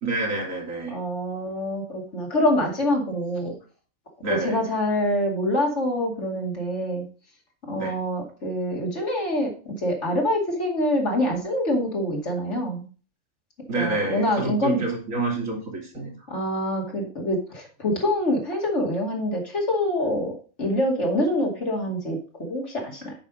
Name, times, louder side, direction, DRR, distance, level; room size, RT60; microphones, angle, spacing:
voice 1, 0.0-1.0 4.2-4.6 7.8-7.9 13.7-16.1, right 3 dB, 85° right, 0 dB, 2.8 m, -28 dB
voice 2, 0.9-3.5 4.3-7.0 7.7-12.9 13.7-14.8 16.3-20.3 20.6-23.1, left 1 dB, 60° left, 0 dB, 2.8 m, -25 dB
9.0 x 5.8 x 4.9 m, 0.38 s
omnidirectional pair, 1.3 m